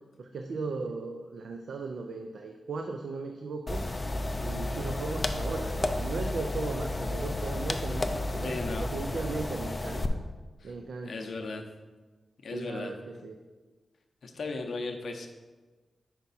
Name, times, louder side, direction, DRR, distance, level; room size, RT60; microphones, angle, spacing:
voice 1, 0.2-3.9 4.4-10.2 10.6-11.3 12.5-13.4, right 3 dB, 75° right, 4 dB, 0.4 m, -37 dB
sound 1, 3.7-10.1, left 2 dB, 20° left, 0.3 m, -32 dB
voice 2, 8.4-8.9 10.6-10.7 11.0-11.6 12.4-12.9 14.2-15.3, left 3 dB, 65° left, 4 dB, 0.6 m, -36 dB
5.7 x 4.5 x 4.0 m, 1.3 s
wide cardioid pair, 170°, 0 cm